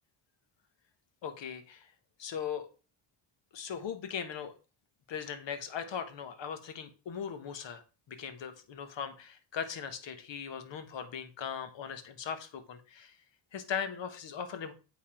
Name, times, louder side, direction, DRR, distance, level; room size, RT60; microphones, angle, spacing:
voice 1, 1.2-1.9 2.2-2.7 3.5-4.5 5.1-7.8 8.1-13.2 13.5-14.7, left 7 dB, 60° left, 9 dB, 1.4 m, -39 dB
8.5 x 4.1 x 4.9 m, 0.34 s
cardioid pair, 95°, 49 cm